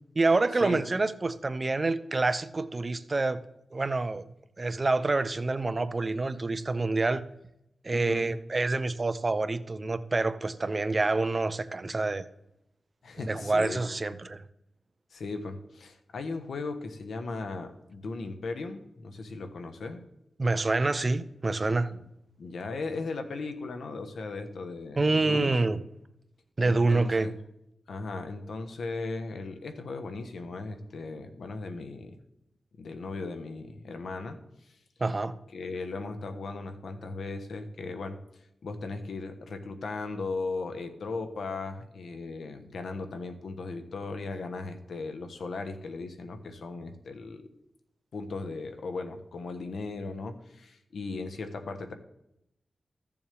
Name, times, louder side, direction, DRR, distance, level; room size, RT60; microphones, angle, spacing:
voice 1, 0.2-3.4 3.7-4.2 4.6-7.2 7.8-12.2 13.2-14.4 20.4-21.9 25.0-25.8 26.6-27.3 35.0-35.3, right 3 dB, 35° right, 12 dB, 0.6 m, -27 dB
voice 2, 7.9-8.3 13.0-13.8 15.1-20.0 21.9-22.0 22.4-25.5 26.6-27.3 27.9-32.2 32.8-34.4 35.5-38.2 38.6-47.5 48.1-52.0, left 3 dB, 80° left, 8 dB, 1.1 m, -37 dB
14.0 x 7.0 x 3.5 m, 0.84 s
wide cardioid pair, 95°, 0 cm